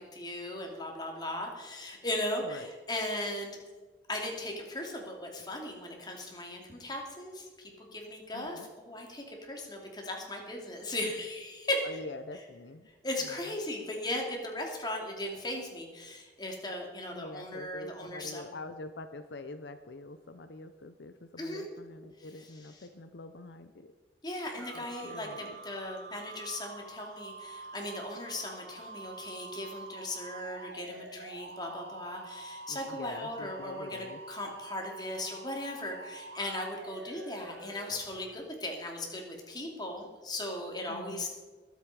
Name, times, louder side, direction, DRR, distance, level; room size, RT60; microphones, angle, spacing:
voice 1, 0.0-3.6 4.1-11.8 13.0-18.5 21.4-21.6 22.2-22.3 24.2-41.3, left 1 dB, 25° left, 1 dB, 2.6 m, -37 dB
voice 2, 8.3-8.7 11.8-12.9 13.2-13.5 17.1-23.9 24.7-25.6 32.7-34.2 40.9-41.3, left 2 dB, 70° left, 9 dB, 0.7 m, -45 dB
sound 1, 24.6-38.4, right 3 dB, 70° right, 0.9 m, -47 dB
21.5 x 8.2 x 4.9 m, 1.4 s
head